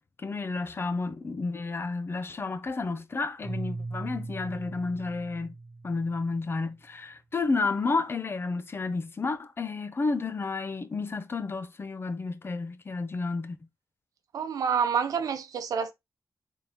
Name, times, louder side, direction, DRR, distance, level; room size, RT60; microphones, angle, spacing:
voice 1, 0.2-5.5 5.8-13.6, left 3 dB, 40° left, 0.7 m, -31 dB
Keyboard (musical), 3.4-6.5, right 3 dB, ahead, 1.2 m, -39 dB
voice 2, 14.3-15.9, right 6 dB, 75° right, 0.8 m, -28 dB
3.8 x 3.8 x 2.9 m
cardioid pair, 60°, 6 cm